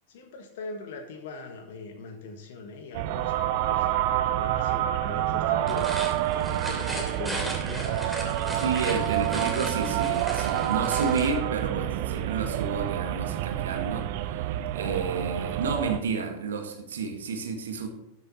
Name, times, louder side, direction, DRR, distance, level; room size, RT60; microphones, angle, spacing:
voice 1, 0.1-9.4, left 3 dB, 55° left, 6 dB, 1.5 m, -41 dB
sound 1, 2.9-16.0, right 13 dB, 50° right, 0.6 m, -28 dB
sound 2, 5.6-11.4, right 1 dB, ahead, 2.7 m, -36 dB
voice 2, 8.5-17.9, right 4 dB, 65° right, 5 dB, 1.9 m, -31 dB
13.5 x 7.6 x 4.2 m, 0.87 s
figure-of-eight pair, 90°, 0 cm